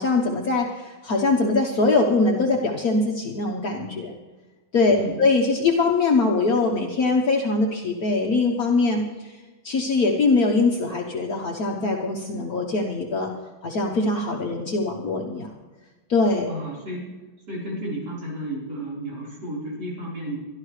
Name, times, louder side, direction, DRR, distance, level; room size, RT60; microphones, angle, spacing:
voice 1, 0.0-4.1 4.7-9.4 9.6-13.3 13.6-15.5 16.1-16.5, left 3 dB, 60° left, 0 dB, 1.6 m, -22 dB
voice 2, 16.4-17.1 17.5-20.4, right 1 dB, 65° right, -6 dB, 5.1 m, -32 dB
23.5 x 12.0 x 3.3 m, 1.2 s
omnidirectional pair, 1.9 m